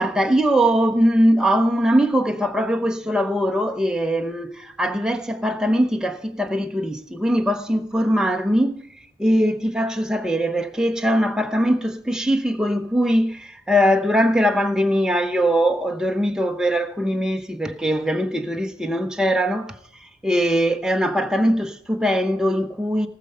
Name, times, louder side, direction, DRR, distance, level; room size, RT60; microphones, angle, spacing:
voice 1, 0.0-23.1, equal, 5° right, 0.8 m, -21 dB
18.5 x 6.7 x 5.6 m
head